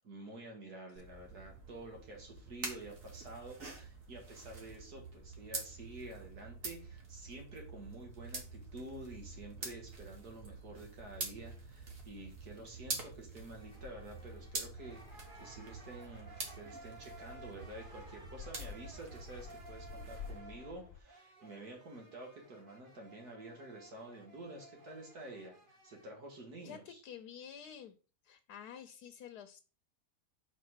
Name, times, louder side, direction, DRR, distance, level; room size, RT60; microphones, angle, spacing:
voice 1, 0.0-25.6 25.8-27.0, right 2 dB, 75° right, 0 dB, 2.3 m, -50 dB
sound 1, 1.0-20.4, right 3 dB, 55° right, 1.9 m, -47 dB
sound 2, 13.6-26.1, right 1 dB, 35° right, 1.3 m, -57 dB
sound 3, 13.7-21.0, left 8 dB, 55° left, 0.8 m, -53 dB
voice 2, 26.6-27.9 28.2-29.6, left 8 dB, 80° left, 6 dB, 1.3 m, -49 dB
5.1 x 4.6 x 6.2 m, 0.35 s
omnidirectional pair, 1.7 m